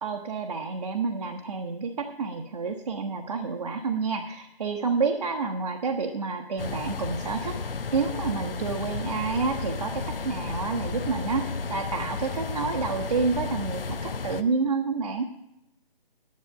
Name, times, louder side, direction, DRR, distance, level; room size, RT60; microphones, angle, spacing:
voice 1, 0.0-15.3, right 4 dB, 40° right, 2 dB, 0.9 m, -29 dB
sound 1, 6.6-14.4, left 4 dB, 65° left, 0.8 m, -33 dB
10.5 x 8.0 x 7.5 m, 0.90 s
figure-of-eight pair, 150°, 30 cm